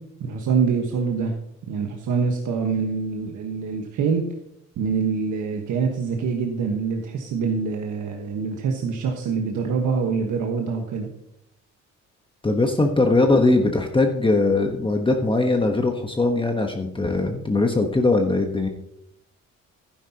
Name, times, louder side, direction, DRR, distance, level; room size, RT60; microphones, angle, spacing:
voice 1, 0.2-1.3 1.7-4.2 4.8-11.1, right 5 dB, 80° right, 2 dB, 1.4 m, -25 dB
voice 2, 12.4-18.7, left 2 dB, 15° left, 4 dB, 1.1 m, -20 dB
11.5 x 10.0 x 2.9 m, 0.76 s
cardioid pair, 90°, 30 cm